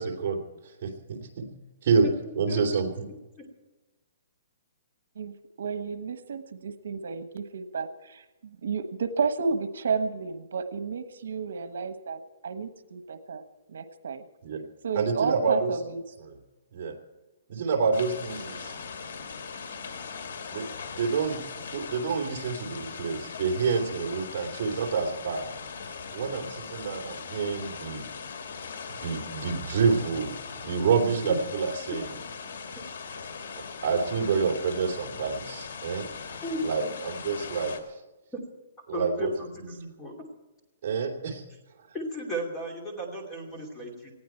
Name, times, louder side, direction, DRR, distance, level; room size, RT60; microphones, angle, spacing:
voice 1, 0.0-1.5 1.8-2.1 2.4-2.9 14.4-14.6 14.9-15.8 16.3-16.4 16.7-16.9 17.5-18.7 20.5-20.7 20.9-25.5 26.1-28.1 29.0-32.1 33.5-36.1 36.6-37.7 38.9-39.3 39.6-39.7 40.8-41.4, right 5 dB, 35° right, -1 dB, 3.1 m, -28 dB
voice 2, 2.5-2.8 3.4-3.5 31.2-31.4 36.4-36.9 38.3-38.4 38.9-40.1 41.9-44.1, equal, 10° left, 0 dB, 2.6 m, -35 dB
voice 3, 5.2-13.4 13.7-14.2 14.8-16.0, right 5 dB, 75° right, 10 dB, 1.2 m, -32 dB
sound 1, 17.9-37.8, left 5 dB, 75° left, 2.6 m, -40 dB
20.0 x 15.5 x 4.5 m, 1.1 s
hypercardioid pair, 180°, 0 cm